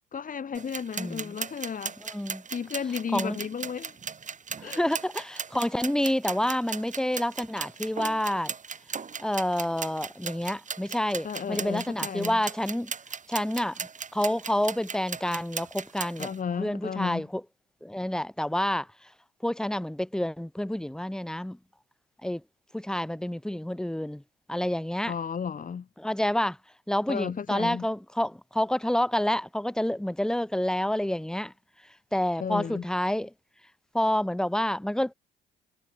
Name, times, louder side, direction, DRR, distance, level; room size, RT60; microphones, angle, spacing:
voice 1, 0.1-2.0 2.5-4.0 4.6-4.9 11.2-12.4 16.2-17.3 25.1-25.9 27.1-27.9 32.4-32.8, left 7 dB, 45° left, 3.5 m, -33 dB
sound 1, 0.6-16.4, right 6 dB, 40° right, 5.6 m, -37 dB
voice 2, 1.0-1.4 2.0-2.4 3.1-3.4 4.6-8.5 9.2-12.9 13.3-13.8 14.1-16.3 16.6-17.4 17.8-18.9 19.4-21.6 22.2-22.4 22.7-24.2 24.5-25.1 26.0-26.6 26.9-31.5 32.1-33.3 33.9-35.1, left 1 dB, 5° left, 1.1 m, -28 dB
supercardioid pair, 70°, 20 cm